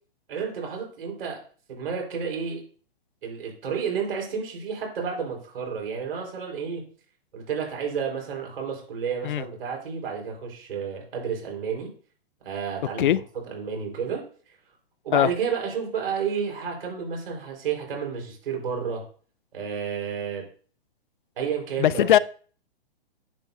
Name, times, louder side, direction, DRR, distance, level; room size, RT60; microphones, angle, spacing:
voice 1, 0.3-1.4 1.7-2.6 3.2-6.8 7.3-11.9 12.4-14.3 15.0-19.0 19.5-20.4 21.4-22.2, right 6 dB, 70° right, 4.7 m, -31 dB
voice 2, 21.8-22.2, left 11 dB, 55° left, 0.4 m, -19 dB
10.5 x 8.3 x 2.8 m
hypercardioid pair, 165°, 30 cm